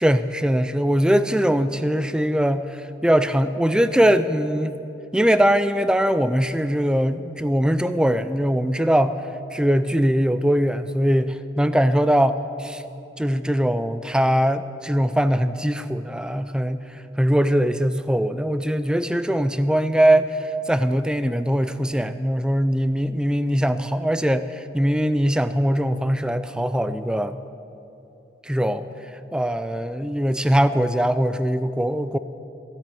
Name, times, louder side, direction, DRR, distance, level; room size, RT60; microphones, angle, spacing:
voice 1, 0.0-4.8 5.1-9.1 9.5-12.8 13.2-27.4 28.4-28.9 29.3-32.2, equal, 5° right, 12 dB, 0.4 m, -21 dB
13.5 x 8.2 x 9.2 m, 3.0 s
head